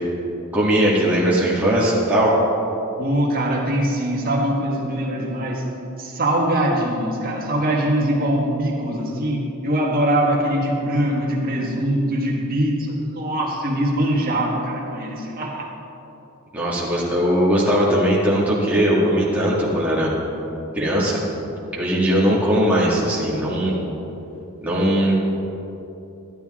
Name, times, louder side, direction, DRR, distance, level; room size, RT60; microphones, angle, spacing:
voice 1, 0.5-2.3 16.5-20.1 20.7-21.2 21.7-23.8 24.6-25.1, equal, 5° right, -7 dB, 2.0 m, -19 dB
voice 2, 3.0-5.7 6.0-15.7, right 1 dB, 40° right, -2 dB, 1.6 m, -22 dB
11.5 x 11.5 x 3.7 m, 3.0 s
head